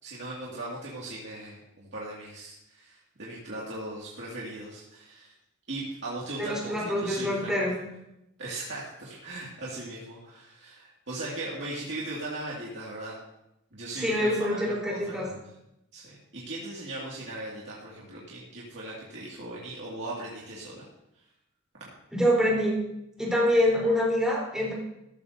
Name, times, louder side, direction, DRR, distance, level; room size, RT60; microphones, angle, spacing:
voice 1, 0.0-5.3 5.7-7.7 8.4-13.2 13.7-15.4 15.9-20.8, right 2 dB, 55° right, -6 dB, 2.2 m, -38 dB
voice 2, 6.4-7.8 13.9-15.3 22.1-22.8 23.2-24.7, equal, 5° right, -5 dB, 3.8 m, -25 dB
14.5 x 13.0 x 2.7 m, 0.85 s
head